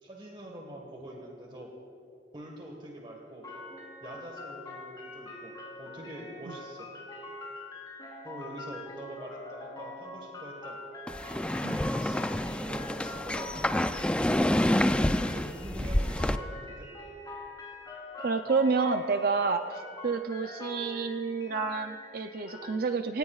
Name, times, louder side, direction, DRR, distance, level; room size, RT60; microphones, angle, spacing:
voice 1, 0.0-1.7 2.3-3.5 4.0-6.9 8.2-10.8 11.8-16.9, right 1 dB, 30° right, 0 dB, 1.5 m, -45 dB
sound 1, 3.4-22.7, left 2 dB, 20° left, 3.9 m, -44 dB
sound 2, 11.1-16.4, left 1 dB, 5° left, 0.3 m, -28 dB
voice 2, 18.2-23.2, right 4 dB, 55° right, 7 dB, 0.5 m, -29 dB
26.0 x 18.0 x 2.4 m, 2.5 s
head